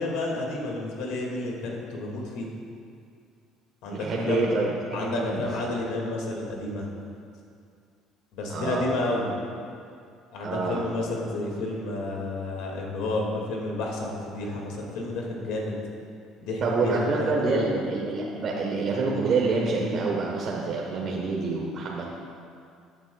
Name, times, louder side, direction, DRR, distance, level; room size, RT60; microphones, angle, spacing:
voice 1, 0.0-2.5 3.8-4.5 4.9-6.9 8.3-9.3 10.3-15.8 16.4-17.0 17.4-17.7, left 2 dB, 80° left, -1 dB, 2.0 m, -30 dB
voice 2, 3.9-5.5 8.5-8.8 10.4-10.8 16.6-22.1, right 3 dB, 50° right, -3 dB, 1.1 m, -27 dB
15.0 x 8.8 x 2.3 m, 2.4 s
cardioid pair, 115°, 0 cm